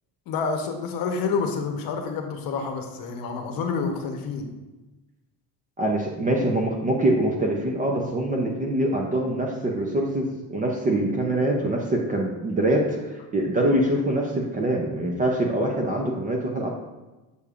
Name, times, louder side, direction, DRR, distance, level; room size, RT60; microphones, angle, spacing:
voice 1, 0.3-4.5, left 5 dB, 55° left, 4 dB, 0.9 m, -28 dB
voice 2, 5.8-16.7, right 1 dB, 20° right, 0 dB, 0.4 m, -24 dB
6.8 x 6.6 x 2.4 m, 1.1 s
cardioid pair, 175°, 42 cm